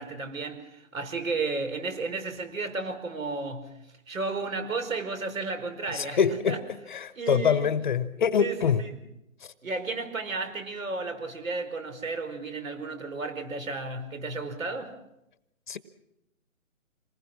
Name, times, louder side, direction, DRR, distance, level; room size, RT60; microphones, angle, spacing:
voice 1, 0.0-3.7 4.1-6.6 7.2-7.7 8.4-8.9 9.6-15.0, right 3 dB, 70° right, 9 dB, 5.1 m, -33 dB
voice 2, 5.9-6.6 6.9-8.8 9.4-9.5 15.7-15.8, left 7 dB, 35° left, 13 dB, 1.1 m, -25 dB
27.0 x 20.0 x 6.2 m, 0.84 s
hypercardioid pair, 160°, 42 cm